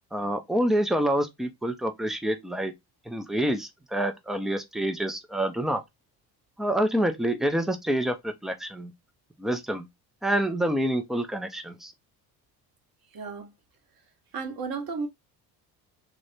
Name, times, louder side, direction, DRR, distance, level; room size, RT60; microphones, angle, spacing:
voice 1, 0.1-2.7 3.1-5.8 6.6-8.9 9.4-9.9 10.2-11.9, right 1 dB, ahead, 0.3 m, -27 dB
voice 2, 13.1-13.5 14.3-15.1, right 4 dB, 45° right, 1.1 m, -33 dB
3.5 x 2.0 x 2.6 m
hypercardioid pair, 55°, 50 cm